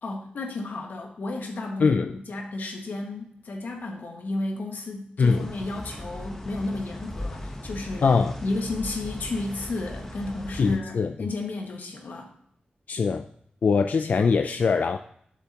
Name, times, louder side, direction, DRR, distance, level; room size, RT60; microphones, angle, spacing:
voice 1, 0.0-2.0 2.3-12.3, left 2 dB, 80° left, 1 dB, 1.7 m, -33 dB
voice 2, 1.8-2.1 5.2-5.5 8.0-8.3 10.6-11.1 12.9-13.2 13.6-15.0, left 5 dB, 60° left, 7 dB, 0.4 m, -22 dB
sound 1, 5.2-10.8, left 1 dB, 15° left, 1.0 m, -38 dB
12.0 x 7.0 x 2.9 m, 0.68 s
wide cardioid pair, 170°, 3 cm